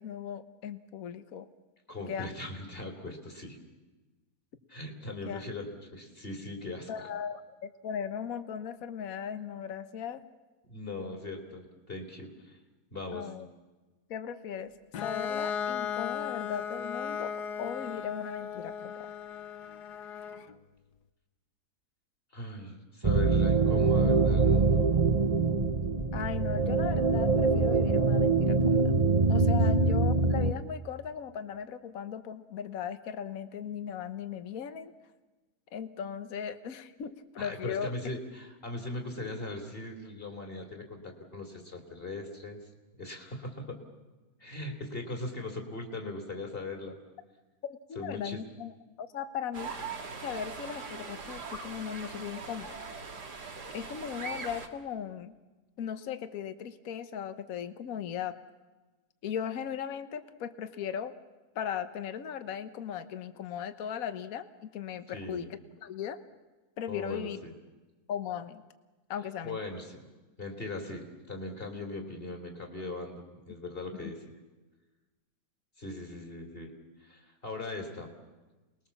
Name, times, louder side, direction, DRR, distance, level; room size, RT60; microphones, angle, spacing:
voice 1, 0.0-1.5 2.1-2.3 5.2-5.4 6.9-10.2 13.1-13.5 14.1-14.7 15.0-18.9 26.1-28.9 29.3-34.9 35.7-37.9 47.7-48.7 49.0-49.7 50.2-52.8 53.7-55.3 55.8-58.3 59.2-61.1 61.5-65.5 65.8-66.2 66.8-67.4 68.1-68.6 69.1-69.6 74.0-74.1, left 8 dB, 60° left, 11 dB, 1.5 m, -37 dB
voice 2, 1.9-3.6 4.7-6.9 10.7-12.6 12.9-13.3 22.3-24.9 37.4-42.6 43.0-43.8 44.4-47.0 48.0-48.4 65.1-65.5 66.9-67.5 69.4-70.1 70.4-74.2 75.8-76.7 77.0-78.1, left 2 dB, 35° left, 4 dB, 3.5 m, -39 dB
Bowed string instrument, 14.9-20.5, left 8 dB, 80° left, 1.5 m, -36 dB
sound 1, 23.0-30.5, right 3 dB, 30° right, 0.7 m, -24 dB
sound 2, 49.5-54.7, right 4 dB, 85° right, 2.6 m, -41 dB
28.5 x 20.5 x 7.2 m, 1.2 s
omnidirectional pair, 1.7 m